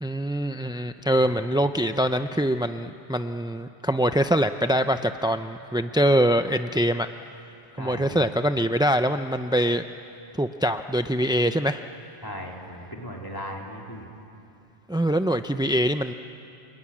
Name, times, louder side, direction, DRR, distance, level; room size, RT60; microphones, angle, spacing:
voice 1, 0.0-7.1 7.8-9.8 10.3-11.8 14.9-16.1, equal, 10° right, 8 dB, 0.3 m, -24 dB
voice 2, 7.8-8.3 12.2-14.1, equal, 20° left, -1 dB, 3.4 m, -37 dB
29.0 x 21.0 x 9.9 m, 2.7 s
omnidirectional pair, 1.1 m